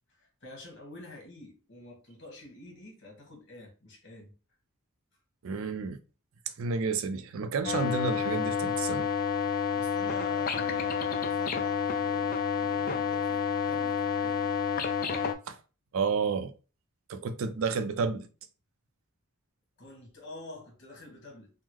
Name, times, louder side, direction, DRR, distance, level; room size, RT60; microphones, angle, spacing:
voice 1, 0.1-4.3 9.7-14.5 19.8-21.5, left 2 dB, 55° left, 1.2 m, -48 dB
voice 2, 5.4-6.0 6.6-9.1 15.5-15.6 15.9-16.5 17.1-18.3, right 4 dB, 65° right, 0.4 m, -30 dB
sound 1, 7.6-15.3, left 7 dB, 40° left, 0.4 m, -29 dB
3.6 x 2.0 x 2.9 m
head